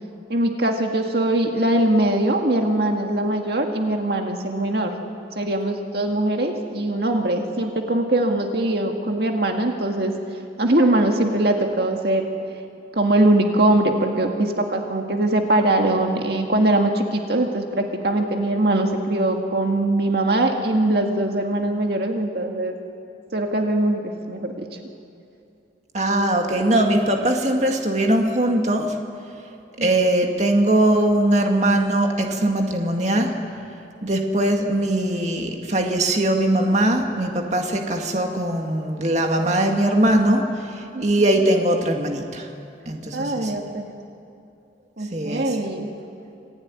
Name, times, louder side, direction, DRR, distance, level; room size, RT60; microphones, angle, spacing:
voice 1, 0.3-4.9 5.4-10.1 10.6-12.3 12.9-22.8 23.3-24.7 29.8-29.9 40.9-41.1 43.1-43.9 45.0-45.9, right 1 dB, 60° right, 3 dB, 1.9 m, -21 dB
voice 2, 25.9-29.0 29.8-33.4 34.0-42.5 42.9-43.5 45.1-45.6, right 1 dB, 40° right, 3 dB, 2.1 m, -21 dB
26.5 x 17.0 x 9.7 m, 2.7 s
head